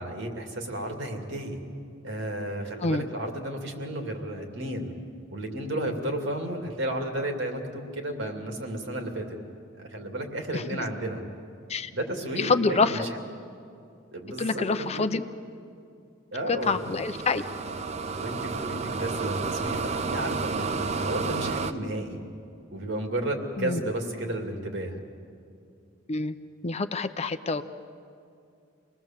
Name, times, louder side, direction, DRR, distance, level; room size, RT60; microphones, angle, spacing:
voice 1, 0.0-1.6 2.0-4.9 5.3-9.4 9.8-11.2 11.9-13.1 14.1-15.1 16.3-16.9 18.2-22.2 22.7-25.0, right 1 dB, 65° right, 3 dB, 2.6 m, -33 dB
voice 2, 10.5-10.9 11.7-11.9 12.4-13.1 14.4-15.2 16.5-17.4 23.6-23.8 26.1-26.4 26.6-27.6, left 3 dB, 35° left, 10 dB, 0.6 m, -26 dB
sound 1, 16.6-21.7, right 4 dB, 35° right, 0.6 m, -31 dB
26.5 x 19.5 x 7.4 m, 2.5 s
head